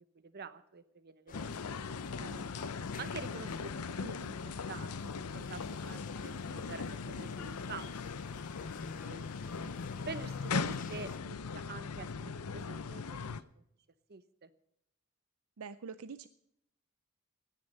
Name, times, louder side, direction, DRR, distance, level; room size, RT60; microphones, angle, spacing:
voice 1, 0.1-2.4 3.0-7.9 8.2-8.4 9.0-9.3 10.1-13.3 13.6-13.7 14.1-14.5, right 4 dB, 45° right, 13 dB, 0.9 m, -47 dB
sound 1, 1.3-13.4, left 5 dB, 80° left, 0.6 m, -39 dB
sound 2, 1.3-11.2, left 5 dB, 40° left, 0.6 m, -51 dB
voice 2, 15.6-16.3, right 5 dB, 70° right, 13 dB, 0.5 m, -46 dB
17.0 x 9.7 x 5.5 m, 0.78 s
head